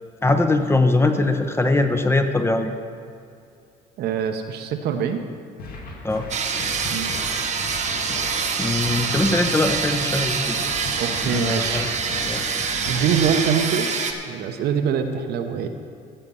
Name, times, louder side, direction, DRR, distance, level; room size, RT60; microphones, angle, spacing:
voice 1, 0.2-2.7 6.0-6.2 8.6-10.6 11.2-11.9 12.2-12.4, left 2 dB, 15° left, 7 dB, 0.8 m, -21 dB
voice 2, 4.0-5.2 6.9-7.1 11.0-11.9 12.8-13.9 14.2-15.7, right 7 dB, 70° right, 6 dB, 0.9 m, -24 dB
sound 1, 5.6-13.6, left 2 dB, 65° left, 1.6 m, -36 dB
sound 2, 6.3-14.1, right 5 dB, 45° right, 1.1 m, -25 dB
15.5 x 5.9 x 5.5 m, 2.4 s
cardioid pair, 110°, 17 cm